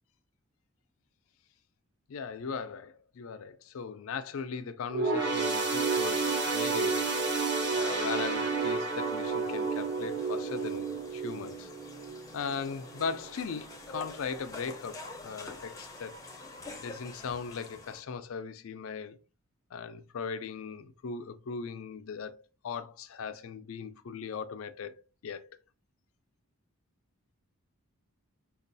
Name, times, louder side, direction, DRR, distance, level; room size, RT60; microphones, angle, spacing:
voice 1, 2.1-7.1 7.7-11.7 12.3-16.2 16.8-19.2 19.7-22.4 22.6-24.9 25.2-25.5, left 5 dB, 60° left, 0.4 m, -38 dB
sound 1, 4.9-12.6 13.0-13.2 14.1-14.2, right 4 dB, 50° right, 1.3 m, -30 dB
sound 2, 5.9-18.0, left 2 dB, 15° left, 0.6 m, -47 dB
5.2 x 2.3 x 2.6 m
head